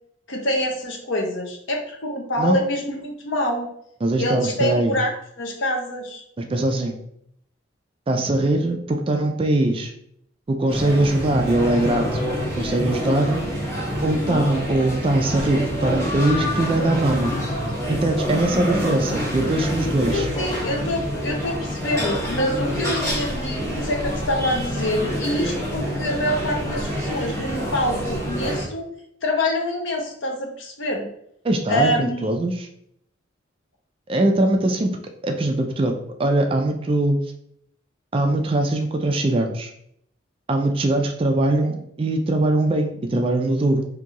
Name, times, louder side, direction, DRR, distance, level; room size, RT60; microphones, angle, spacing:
voice 1, 0.3-3.7 4.2-5.1 5.4-6.2 20.1-28.9 29.2-31.1 31.7-32.3, left 1 dB, 70° left, 2 dB, 0.7 m, -26 dB
voice 2, 4.0-5.0 6.4-7.0 8.1-9.9 10.5-13.4 14.0-17.3 17.9-20.3 31.4-32.7 34.1-34.9 35.2-35.9 36.2-37.2 38.1-39.7 40.5-43.9, right 1 dB, 25° right, 4 dB, 0.3 m, -21 dB
sound 1, 10.7-28.6, equal, 15° left, 1.0 m, -26 dB
2.9 x 2.6 x 3.6 m, 0.71 s
head